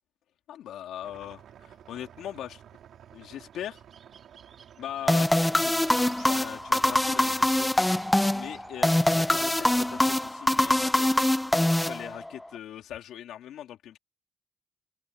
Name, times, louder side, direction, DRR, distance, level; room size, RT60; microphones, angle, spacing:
voice 1, 0.5-2.6 3.1-3.8 4.8-7.7 8.3-11.3 11.8-14.0, left 11 dB, 80° left, 2.9 m, -40 dB
sound 1, 1.0-10.3, right 9 dB, 70° right, 3.4 m, -53 dB
sound 2, 1.2-9.6, right 7 dB, 50° right, 7.6 m, -59 dB
sound 3, 5.1-12.5, left 1 dB, 10° left, 0.6 m, -24 dB
open air
cardioid pair, 90°, 0 cm